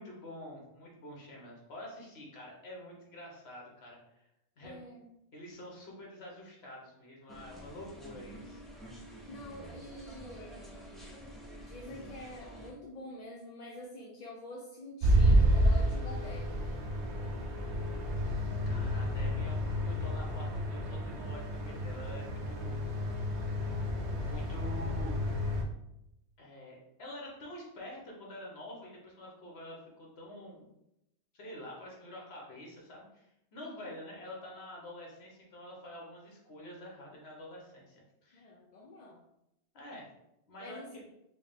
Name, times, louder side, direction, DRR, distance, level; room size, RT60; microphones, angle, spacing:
voice 1, 0.0-4.3 4.6-4.8 5.3-8.6 18.6-23.6 24.2-25.4 26.4-30.7 31.3-38.5 39.7-40.1 40.5-41.0, left 1 dB, 70° left, -2 dB, 1.3 m, -47 dB
voice 2, 4.6-5.1 9.3-11.2 11.6-16.6 33.6-33.9 38.3-39.2 40.6-41.0, left 1 dB, 50° left, -2 dB, 0.5 m, -47 dB
sound 1, 7.3-12.7, right 1 dB, ahead, 0.5 m, -48 dB
sound 2, 15.0-25.6, equal, 85° right, 0.9 m, -30 dB
4.7 x 2.0 x 3.5 m, 0.85 s
omnidirectional pair, 1.1 m